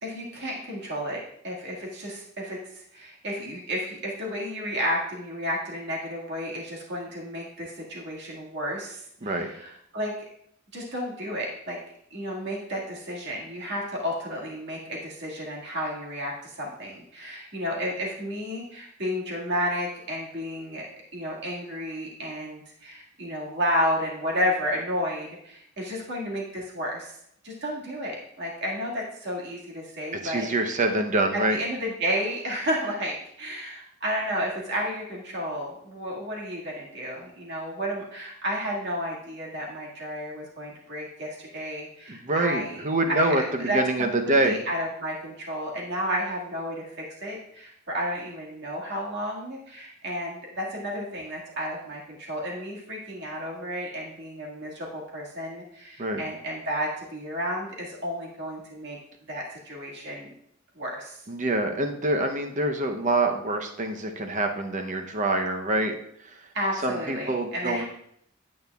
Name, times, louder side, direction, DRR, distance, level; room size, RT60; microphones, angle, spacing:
voice 1, 0.0-10.1 10.7-11.8 12.1-20.9 21.1-27.1 27.4-30.8 31.3-42.8 43.1-43.2 43.6-59.0 59.3-60.3 60.8-61.2 66.5-67.9, equal, 55° right, -3 dB, 1.9 m, -32 dB
voice 2, 30.2-31.6 42.1-44.6 56.0-56.2 61.3-65.9 66.2-66.5 66.8-67.8, right 2 dB, 35° right, 5 dB, 0.7 m, -26 dB
9.1 x 8.5 x 2.3 m, 0.71 s
head